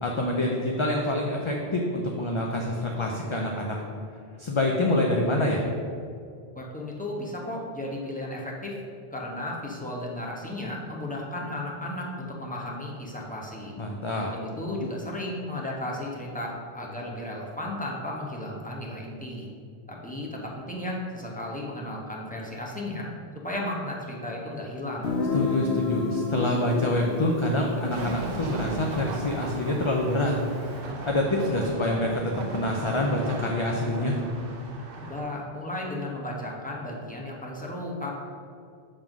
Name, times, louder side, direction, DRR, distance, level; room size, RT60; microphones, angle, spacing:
voice 1, 0.0-3.8 4.4-5.6 13.8-14.3 25.3-30.3 31.1-32.2 32.5-34.2, left 1 dB, 35° left, 0 dB, 0.5 m, -26 dB
voice 2, 6.5-8.8 9.1-13.7 14.2-19.5 19.9-23.1 23.4-25.1 35.0-38.1, left 1 dB, 10° left, -3 dB, 1.1 m, -34 dB
Guitar, 25.0-30.6, left 3 dB, 70° left, 1.0 m, -31 dB
sound 1, 27.9-35.2, right 3 dB, 60° right, 1.1 m, -37 dB
7.5 x 3.6 x 6.0 m, 2.3 s
omnidirectional pair, 1.1 m